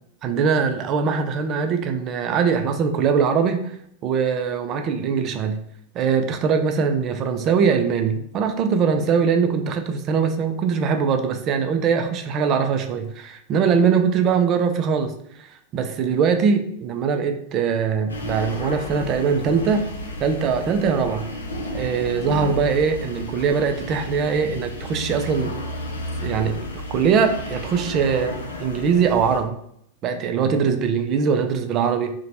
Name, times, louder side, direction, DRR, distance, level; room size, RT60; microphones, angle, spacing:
voice 1, 0.2-3.7 4.0-5.6 5.9-15.1 15.4-15.5 15.7-19.9 20.2-21.3 21.7-25.6 26.2-26.6 26.9-29.6 30.0-32.1, right 6 dB, 35° right, 6 dB, 0.4 m, -22 dB
sound 1, 18.1-29.4, left 1 dB, 70° left, 0.5 m, -32 dB
2.8 x 2.1 x 2.8 m, 0.72 s
figure-of-eight pair, 90°, 0 cm